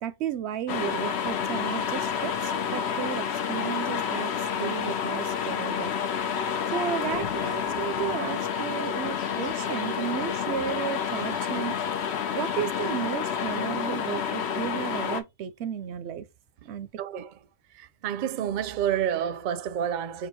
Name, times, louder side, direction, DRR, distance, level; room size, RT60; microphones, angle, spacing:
voice 1, 0.0-5.9 6.7-11.8 12.3-16.3 16.6-16.9, right 9 dB, 85° right, 0.8 m, -33 dB
sound 1, 0.7-15.2, left 7 dB, 80° left, 1.0 m, -29 dB
voice 2, 17.0-17.3 17.8-20.3, right 9 dB, 55° right, 0.6 m, -29 dB
6.7 x 2.3 x 3.0 m
omnidirectional pair, 1.1 m